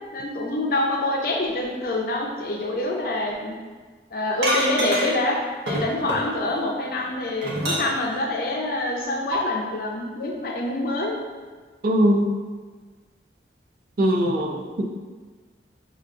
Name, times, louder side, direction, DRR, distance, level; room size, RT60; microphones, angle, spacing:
voice 1, 0.1-3.5 4.1-5.4 5.6-11.1, left 2 dB, 55° left, -1 dB, 0.6 m, -26 dB
sound 1, 4.4-5.3 5.7-6.6 7.0-8.2 9.3-9.4, right 1 dB, 80° right, 0.9 m, -26 dB
voice 2, 11.8-12.3 14.0-14.8, equal, 55° right, 0 dB, 0.4 m, -20 dB
5.7 x 2.5 x 2.5 m, 1.4 s
head